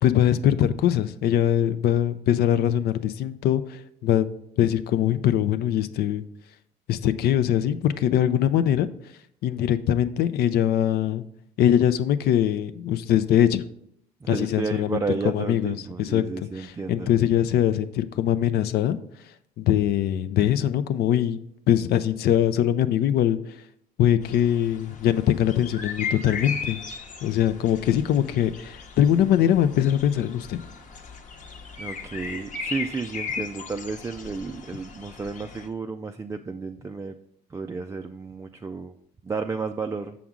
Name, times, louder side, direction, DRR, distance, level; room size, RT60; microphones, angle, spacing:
voice 1, 0.0-6.2 6.9-8.9 9.4-11.2 11.6-13.6 14.3-15.0 15.2-16.2 16.6-19.0 19.6-21.4 21.7-23.4 24.0-26.8 27.2-30.6, left 10 dB, 70° left, 12 dB, 0.5 m, -22 dB
voice 2, 14.2-17.1 31.8-37.1 37.5-38.9 39.2-40.2, right 4 dB, 15° right, 4 dB, 0.3 m, -32 dB
sound 1, 24.2-35.7, left 5 dB, 50° left, 0.9 m, -37 dB
7.1 x 6.0 x 3.7 m, 0.71 s
cardioid pair, 110°, 17 cm